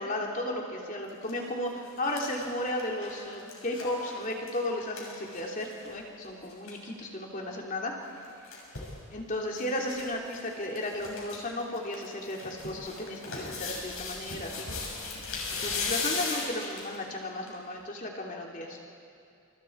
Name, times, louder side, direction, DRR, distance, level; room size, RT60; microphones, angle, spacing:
voice 1, 0.0-7.9 9.1-14.7 15.5-18.8, left 1 dB, 40° left, 0 dB, 3.1 m, -34 dB
sound 1, 1.0-1.3 1.7-5.9 6.2-6.3 6.5-6.8 8.0-8.9 9.5-10.0 10.3-10.4 10.7-11.4 11.7-16.9 17.5-17.6, left 4 dB, 70° left, 6.4 m, -37 dB
28.5 x 28.5 x 4.7 m, 2.6 s
head